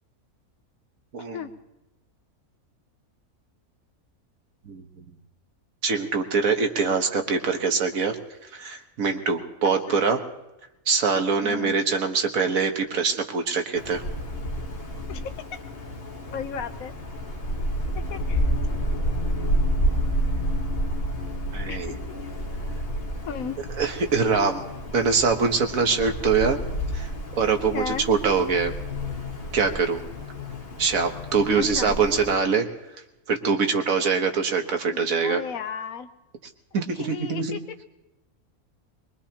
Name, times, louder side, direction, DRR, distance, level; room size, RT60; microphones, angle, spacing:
voice 1, 5.8-8.2 8.5-10.2 10.9-14.0 21.5-22.0 23.8-24.6 24.9-26.6 26.9-27.1 27.4-28.7 29.5-30.0 30.8-32.7 33.3-35.4 36.7-37.6, right 5 dB, 65° right, 5 dB, 1.6 m, -23 dB
voice 2, 11.4-11.8 15.1-15.6 16.3-16.9 17.9-18.4 21.7-21.9 22.2-22.3 23.3-23.6 27.7-28.0 31.6-32.0 34.9-36.1 36.7-37.6, left 7 dB, 70° left, 9 dB, 1.2 m, -35 dB
Wind, 13.8-32.3, equal, 40° left, 1.5 m, -30 dB
22.5 x 22.0 x 2.9 m, 0.99 s
omnidirectional pair, 1.6 m